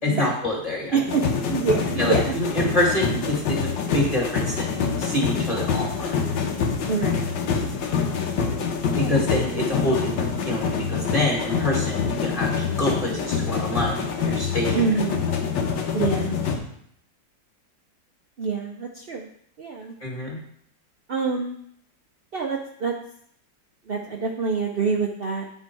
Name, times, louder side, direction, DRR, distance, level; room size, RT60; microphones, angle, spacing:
voice 1, 0.0-1.0 2.0-6.2 9.0-14.8 20.0-20.4, left 1 dB, 20° left, -1 dB, 1.9 m, -26 dB
voice 2, 0.9-2.3 6.9-7.4 8.9-9.2 9.5-9.9 14.7-15.2 15.9-16.4 18.4-19.3 19.6-19.9 21.1-21.6 22.3-22.9 23.9-25.4, right 5 dB, 60° right, 0 dB, 0.6 m, -26 dB
sound 1, 1.1-16.6, left 6 dB, 85° left, 1.7 m, -26 dB
9.4 x 4.6 x 4.7 m, 0.67 s
omnidirectional pair, 2.0 m